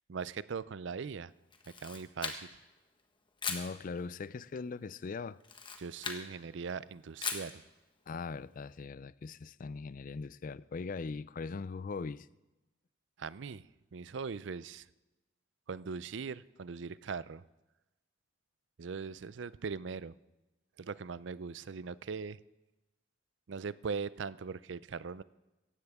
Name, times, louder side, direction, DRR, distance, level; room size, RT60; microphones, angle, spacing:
voice 1, 0.1-1.3 1.8-2.5 5.8-7.6 13.2-13.6 13.9-14.8 15.7-17.4 18.8-20.1 20.8-22.4 23.5-25.2, right 5 dB, 65° right, 0.5 m, -40 dB
Camera, 1.5-2.7 3.4-3.7 5.4-6.3 7.2-7.5, left 5 dB, 25° left, 1.4 m, -38 dB
voice 2, 3.5-5.4 8.1-12.3, left 4 dB, 45° left, 0.4 m, -40 dB
17.5 x 15.0 x 3.6 m
head